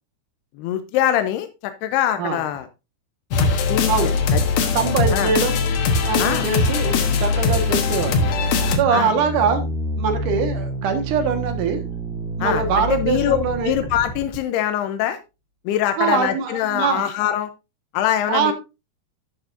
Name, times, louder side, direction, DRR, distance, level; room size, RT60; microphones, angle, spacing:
voice 1, 0.6-2.7 3.4-4.5 5.1-5.3 6.2-6.5 8.9-9.1 12.4-13.4 13.6-15.2 15.7-17.5 17.9-18.5, left 11 dB, 90° left, 9 dB, 2.9 m, -23 dB
sound 1, 3.3-8.8, left 4 dB, 65° left, 1.7 m, -20 dB
voice 2, 4.7-5.5 6.0-8.3 8.7-9.7 10.0-11.8 12.4-13.7 16.0-17.0 18.3-18.5, right 6 dB, 60° right, 6 dB, 2.8 m, -22 dB
sound 2, 5.6-14.4, right 1 dB, ahead, 2.7 m, -30 dB
11.0 x 8.8 x 2.6 m, 0.27 s
omnidirectional pair, 4.5 m